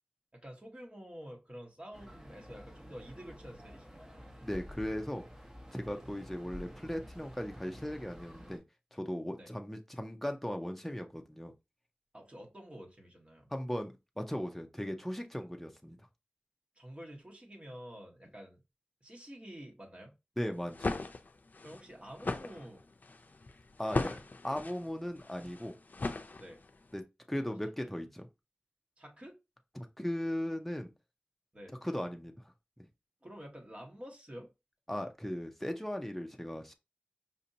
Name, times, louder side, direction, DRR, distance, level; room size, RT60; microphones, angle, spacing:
voice 1, 0.3-4.3 5.9-6.0 9.4-9.5 12.1-13.5 16.8-18.6 19.0-20.1 21.6-22.8 23.9-24.2 26.4-26.6 27.4-27.9 29.0-29.4 31.5-31.8 33.2-34.5, equal, 35° right, 1.4 m, -49 dB
sound 1, 1.9-8.6, equal, 20° right, 1.1 m, -50 dB
voice 2, 4.4-5.2 5.7-8.6 8.9-11.5 13.5-16.0 20.4-21.0 23.8-24.1 24.4-25.7 26.9-28.3 29.7-30.9 31.8-32.3 32.8-32.9 34.9-36.7, equal, 5° left, 0.6 m, -37 dB
sound 2, 20.5-26.8, left 3 dB, 65° left, 0.5 m, -38 dB
5.2 x 2.7 x 2.8 m
wide cardioid pair, 50°, 3 cm